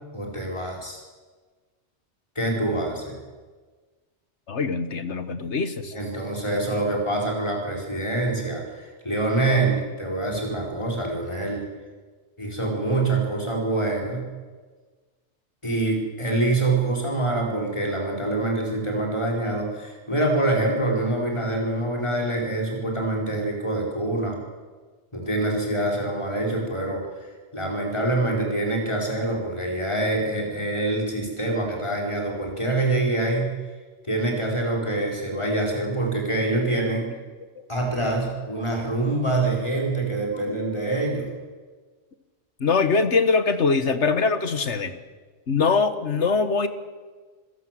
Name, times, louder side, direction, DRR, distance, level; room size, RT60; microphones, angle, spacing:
voice 1, 0.1-1.0 2.3-3.2 5.9-11.6 12.4-14.2 15.6-24.4 25.1-27.0 27.5-33.5 34.0-37.1 37.7-41.3, right 2 dB, 25° left, 0 dB, 5.1 m, -25 dB
voice 2, 4.5-5.9 36.7-36.8 42.6-44.9 45.5-46.7, left 4 dB, 75° left, 11 dB, 1.7 m, -22 dB
27.5 x 16.0 x 7.7 m, 1.4 s
omnidirectional pair, 1.2 m